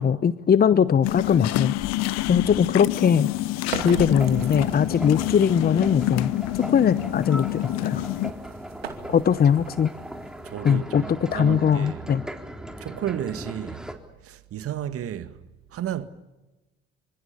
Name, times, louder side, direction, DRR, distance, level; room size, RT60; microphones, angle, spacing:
voice 1, 0.0-1.7 2.3-3.3 3.8-8.0 9.1-9.9 10.6-12.2, left 7 dB, 30° left, 0.9 m, -21 dB
sound 1, 1.0-8.3, left 17 dB, 60° left, 0.9 m, -27 dB
sound 2, 3.5-5.1 7.8-10.8, right 7 dB, 90° right, 2.6 m, -39 dB
sound 3, 3.7-13.9, right 1 dB, ahead, 3.8 m, -38 dB
voice 2, 10.4-12.1 12.8-13.9 14.2-15.4 15.7-16.1, right 10 dB, 50° right, 1.9 m, -32 dB
27.5 x 26.0 x 7.0 m
hypercardioid pair, 60°, 30 cm